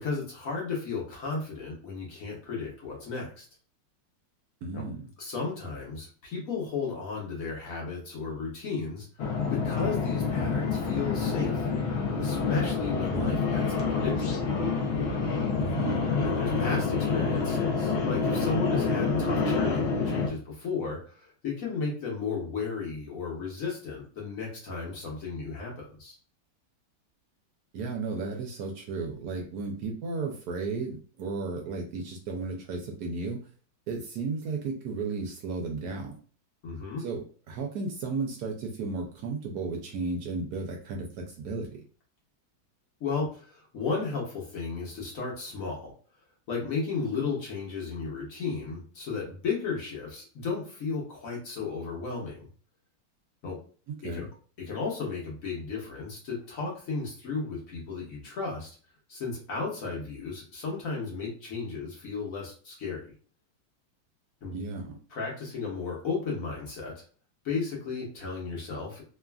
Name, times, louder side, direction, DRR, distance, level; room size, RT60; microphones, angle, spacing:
voice 1, 0.0-3.4 4.7-4.8 5.2-9.1 9.5-11.7 12.2-14.5 15.6-15.8 16.2-26.2 36.6-37.0 43.0-45.9 46.5-52.5 53.4-53.6 54.1-54.2 54.6-58.7 59.1-63.1 64.4-64.6 65.1-66.9 67.4-69.0, left 4 dB, 55° left, -2 dB, 1.2 m, -34 dB
voice 2, 4.6-5.1 13.1-13.4 15.6-16.1 27.7-33.4 33.9-36.1 37.0-41.1 41.4-41.8 53.9-54.3 64.5-65.0, right 3 dB, 70° right, 2 dB, 1.0 m, -34 dB
sound 1, 9.2-20.3, left 4 dB, 80° left, 0.6 m, -27 dB
3.2 x 2.4 x 2.3 m, 0.41 s
omnidirectional pair, 1.9 m